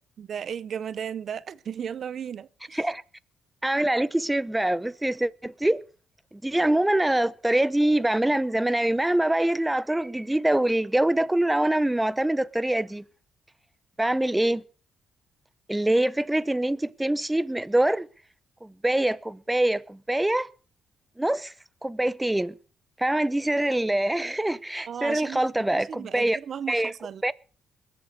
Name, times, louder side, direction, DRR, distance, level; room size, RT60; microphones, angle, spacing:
voice 1, 0.2-2.8 24.9-27.3, right 8 dB, 55° right, 0.6 m, -35 dB
voice 2, 3.6-5.8 6.4-13.0 14.0-14.6 15.7-18.1 18.6-20.5 21.2-21.5 21.8-22.5 23.0-26.4 26.7-26.9 27.2-27.3, right 1 dB, 10° right, 0.7 m, -24 dB
21.0 x 8.1 x 6.6 m
cardioid pair, 90°, 0 cm